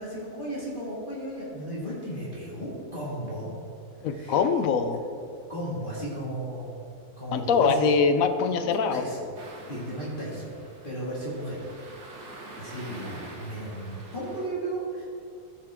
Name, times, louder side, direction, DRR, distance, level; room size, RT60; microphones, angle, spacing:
voice 1, 0.0-3.5 4.1-4.4 5.5-6.8 7.2-7.8 8.6-9.3 9.7-10.5 10.8-11.6 12.6-15.0, right 1 dB, 35° left, -8 dB, 2.1 m, -34 dB
voice 2, 4.0-5.0 7.3-9.0, left 5 dB, 65° left, 9 dB, 1.0 m, -23 dB
sound 1, 9.4-14.5, right 2 dB, 80° right, 2.0 m, -45 dB
14.5 x 5.9 x 3.6 m, 2.5 s
omnidirectional pair, 1.7 m